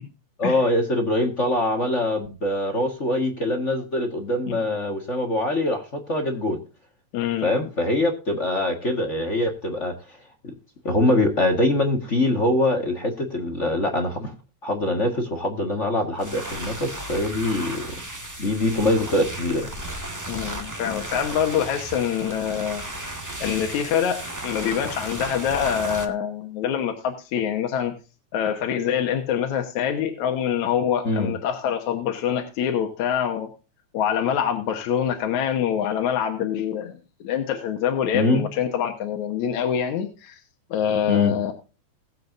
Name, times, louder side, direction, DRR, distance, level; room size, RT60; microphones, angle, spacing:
voice 1, 0.4-6.6 7.4-10.2 10.4-10.5 10.8-14.3 14.6-17.9 18.4-19.7 31.0-31.3 38.1-38.5 41.1-41.4, left 1 dB, 35° left, 3 dB, 1.3 m, -23 dB
voice 2, 7.1-7.5 20.3-22.8 23.4-27.9 28.3-33.5 33.9-40.4 40.7-41.5, left 8 dB, 70° left, 4 dB, 2.6 m, -25 dB
sound 1, 16.1-26.0, right 1 dB, 10° right, 1.0 m, -34 dB
20.0 x 7.8 x 2.6 m, 0.33 s
omnidirectional pair, 3.5 m